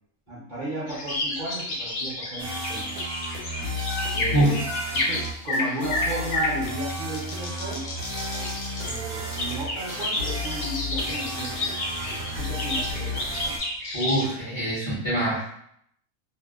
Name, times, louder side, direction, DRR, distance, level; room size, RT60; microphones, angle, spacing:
voice 1, 0.3-2.8 4.1-4.6 4.9-7.8 8.8-11.8 12.4-13.2, right 1 dB, 50° right, -8 dB, 0.6 m, -34 dB
sound 1, 0.9-14.3, left 2 dB, 80° left, 1.0 m, -31 dB
sound 2, 2.4-13.6, left 1 dB, 80° right, 1.0 m, -33 dB
voice 2, 13.9-15.5, right 1 dB, 35° left, -9 dB, 0.5 m, -24 dB
2.7 x 2.0 x 2.3 m, 0.71 s
omnidirectional pair, 1.5 m